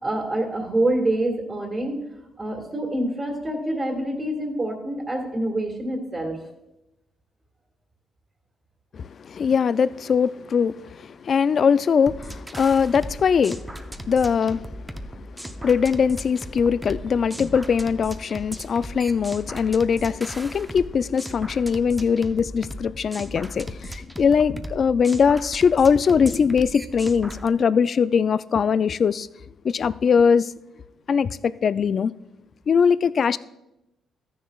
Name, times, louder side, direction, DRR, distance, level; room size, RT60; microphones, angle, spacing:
voice 1, 0.0-2.0 2.4-6.4, right 1 dB, 30° right, 1.9 m, -26 dB
voice 2, 8.9-14.7 15.1-29.3 29.6-30.5 31.1-32.1 32.7-33.4, left 6 dB, 50° left, 0.3 m, -21 dB
sound 1, 12.1-27.5, right 1 dB, 10° right, 0.7 m, -37 dB
14.0 x 10.0 x 2.4 m
cardioid pair, 90°, 0 cm